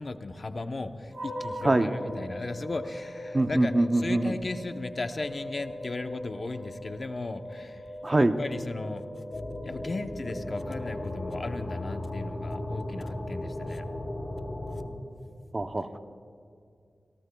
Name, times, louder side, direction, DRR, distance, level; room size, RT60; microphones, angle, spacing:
voice 1, 0.0-7.9 8.2-9.1 9.6-13.9, left 2 dB, 45° left, 7 dB, 0.8 m, -36 dB
sound 1, 1.1-11.6, equal, 50° right, 4.9 m, -41 dB
voice 2, 3.3-4.3 8.0-8.3 15.5-16.0, right 2 dB, 30° right, 8 dB, 0.6 m, -24 dB
sound 2, 9.3-14.9, left 1 dB, 20° left, 4.4 m, -36 dB
28.0 x 18.0 x 2.3 m, 2.3 s
wide cardioid pair, 105°, 0 cm